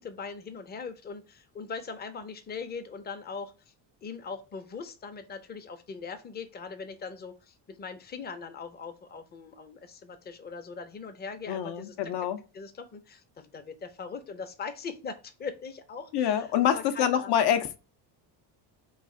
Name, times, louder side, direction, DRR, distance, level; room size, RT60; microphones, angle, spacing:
voice 1, 0.0-3.7 4.0-12.1 12.5-17.4, left 5 dB, 20° left, 0.5 m, -41 dB
voice 2, 11.5-12.4 16.1-17.8, left 9 dB, 60° left, 0.6 m, -26 dB
3.2 x 2.4 x 3.6 m
cardioid pair, 125°, 46 cm